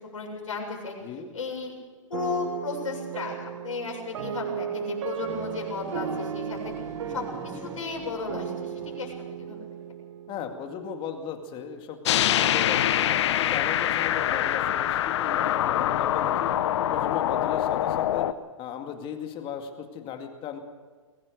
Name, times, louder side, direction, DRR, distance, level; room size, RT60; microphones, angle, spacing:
voice 1, 0.1-0.9 1.3-1.8 2.1-6.7 7.1-9.7, left 4 dB, 80° left, 0 dB, 7.5 m, -34 dB
sound 1, 2.1-11.3, right 9 dB, 65° right, 1.2 m, -36 dB
sound 2, 5.2-9.2, right 1 dB, 15° right, 7.1 m, -43 dB
voice 2, 10.3-13.1 13.4-16.5 16.9-18.3 18.6-20.6, left 7 dB, 30° left, 5 dB, 2.3 m, -37 dB
sound 3, 12.0-18.3, left 12 dB, 60° left, 1.0 m, -24 dB
22.5 x 17.5 x 6.6 m, 1.5 s
hypercardioid pair, 120°, 17 cm